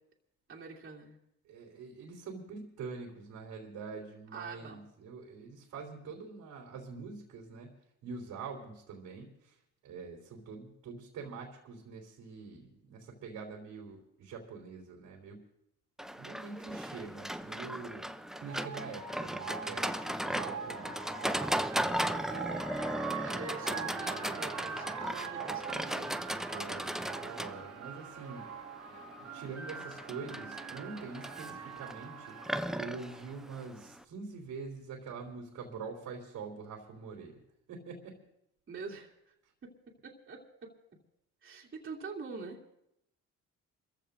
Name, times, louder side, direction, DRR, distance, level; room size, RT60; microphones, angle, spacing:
voice 1, 0.5-1.2 4.3-4.8 22.1-22.7 23.2-25.9 38.7-39.3 39.6-41.0 41.4-42.6, right 4 dB, 40° right, -4 dB, 2.8 m, -45 dB
voice 2, 1.4-7.7 8.0-9.6 9.8-15.4 16.2-18.1 18.4-20.9 26.5-28.5 28.9-32.4 32.7-37.4 37.7-38.2, right 4 dB, 80° right, 0 dB, 3.3 m, -45 dB
Livestock farm animals working animals, 16.0-34.0, equal, ahead, 0.5 m, -37 dB
sound 1, 17.8-33.4, right 6 dB, 60° right, 1.3 m, -43 dB
29.5 x 15.0 x 2.6 m, 0.80 s
cardioid pair, 90°, 30 cm